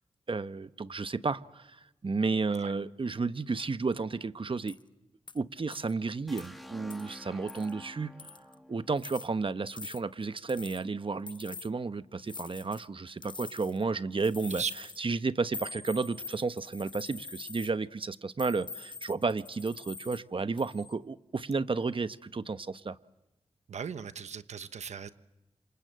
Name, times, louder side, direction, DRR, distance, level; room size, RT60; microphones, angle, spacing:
voice 1, 0.3-4.8 5.3-8.3 8.7-23.0, right 4 dB, 50° right, 1.1 m, -32 dB
sound 1, 4.7-4.8 5.3-5.4 5.7-5.9 6.4-6.5 6.9-7.1 7.5-7.7 8.2-8.5 9.0-9.3 9.7-10.0 10.5-10.8 11.3-11.7 12.3-12.9 13.2-13.8 14.2-15.0 15.5-17.7 18.4-20.2 20.6-20.9, left 3 dB, 45° left, 1.0 m, -44 dB
sound 2, 6.3-10.1, left 1 dB, ahead, 2.7 m, -50 dB
voice 2, 23.7-25.1, right 7 dB, 85° right, 1.1 m, -37 dB
27.5 x 27.0 x 7.7 m
cardioid pair, 40°, 11 cm